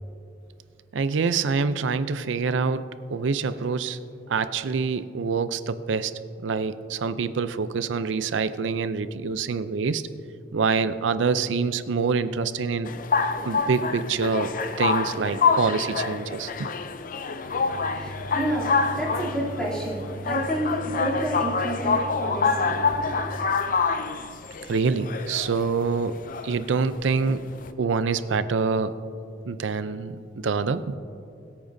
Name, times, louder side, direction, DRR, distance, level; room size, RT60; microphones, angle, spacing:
voice 1, 0.9-2.8 3.1-4.0 4.3-6.1 6.4-10.0 10.5-12.9 13.4-14.5 14.8-16.7 24.7-26.2 26.4-27.4 27.8-28.9 29.5-30.9, right 5 dB, 80° right, 13 dB, 0.5 m, -26 dB
sound 1, 12.8-27.7, left 5 dB, 45° left, 0.5 m, -27 dB
voice 2, 17.4-23.2, right 1 dB, 5° left, -7 dB, 3.0 m, -30 dB
21.5 x 8.8 x 2.7 m, 2.5 s
head